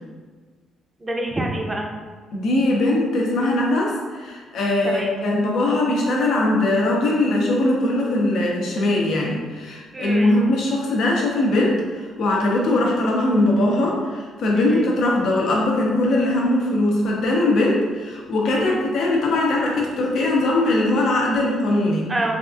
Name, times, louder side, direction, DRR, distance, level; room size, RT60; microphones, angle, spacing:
voice 1, 1.0-1.9 4.8-5.1 9.9-10.4 14.6-14.9 18.5-18.8 22.1-22.3, right 1 dB, 20° right, 0 dB, 0.5 m, -27 dB
voice 2, 2.3-22.1, left 1 dB, 75° left, -2 dB, 0.6 m, -21 dB
3.4 x 2.4 x 2.4 m, 1.4 s
cardioid pair, 90°, 0 cm